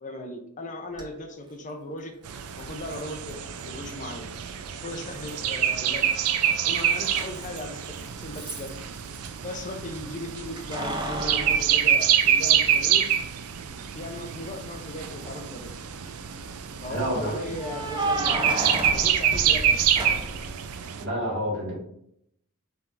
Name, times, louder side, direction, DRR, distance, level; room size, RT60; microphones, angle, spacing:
voice 1, 0.0-2.2 2.6-4.3 4.8-6.3 6.6-8.7 9.4-13.1 13.9-15.7 16.8-18.6 18.9-19.9, left 1 dB, 35° left, 4 dB, 0.5 m, -37 dB
Keys jangling, 0.9-1.0 2.9-3.0 5.3-5.8 6.1-9.3 10.6-12.7 13.2-13.3 15.0-15.6 17.5-20.5, right 1 dB, 20° right, 0.6 m, -33 dB
sound 1, 2.2-21.0, right 9 dB, 90° right, 0.4 m, -26 dB
voice 2, 16.9-17.3 21.0-21.8, equal, 55° right, -3 dB, 1.7 m, -28 dB
5.6 x 3.4 x 2.5 m, 0.73 s
head